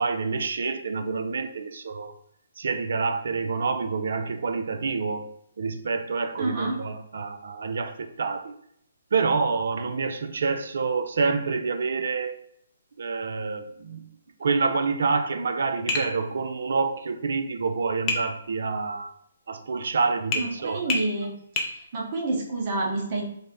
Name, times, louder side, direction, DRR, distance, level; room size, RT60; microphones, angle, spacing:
voice 1, 0.0-2.1 2.6-5.3 5.6-8.5 9.1-12.4 13.0-14.1 14.4-19.1 19.5-20.8, right 4 dB, 65° right, 9 dB, 0.4 m, -27 dB
voice 2, 6.4-6.8 20.3-21.3 21.6-23.2, right 2 dB, 45° right, -1 dB, 0.9 m, -28 dB
Tap, 15.9-16.1 18.1-18.3 20.3-20.5 20.9-21.1 21.6-21.7, left 3 dB, 25° left, 0.6 m, -26 dB
3.2 x 2.0 x 3.9 m, 0.69 s
figure-of-eight pair, 140°, 0 cm